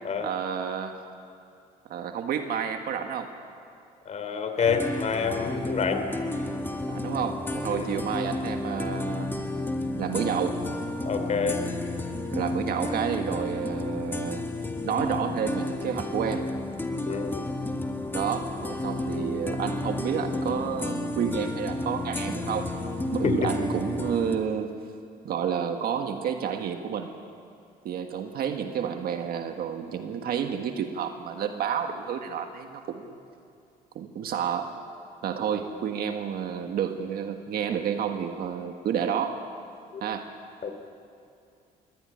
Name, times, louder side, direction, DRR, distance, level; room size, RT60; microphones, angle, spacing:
voice 1, 0.2-1.0 1.8-3.3 6.9-9.3 10.0-10.6 12.3-14.5 14.8-16.5 18.1-22.7 23.1-24.8 25.2-27.1 27.8-33.2 33.9-34.7 35.2-39.4 40.0-40.3, right 8 dB, 65° right, 5 dB, 1.6 m, -30 dB
voice 2, 4.0-6.0 7.7-7.9 11.0-11.6 17.1-17.4 23.2-23.5 39.9-40.0 40.6-40.8, left 5 dB, 45° left, 7 dB, 3.1 m, -27 dB
sound 1, 4.7-24.4, left 2 dB, 10° left, 1.9 m, -32 dB
22.0 x 17.0 x 10.0 m, 2.4 s
cardioid pair, 110°, 17 cm